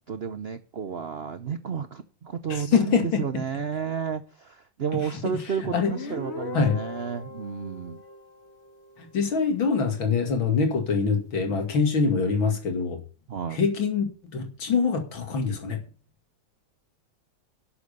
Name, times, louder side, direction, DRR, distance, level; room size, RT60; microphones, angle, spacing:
voice 1, 0.1-8.0 13.3-13.6, right 7 dB, 80° right, 11 dB, 0.5 m, -32 dB
voice 2, 2.5-3.2 5.7-5.9 6.5-6.8 9.0-13.0 13.5-14.1 14.3-15.8, left 5 dB, 85° left, 4 dB, 3.1 m, -24 dB
Guitar, 5.7-9.2, left 3 dB, 35° left, 1.9 m, -39 dB
12.0 x 7.7 x 6.8 m, 0.35 s
omnidirectional pair, 2.1 m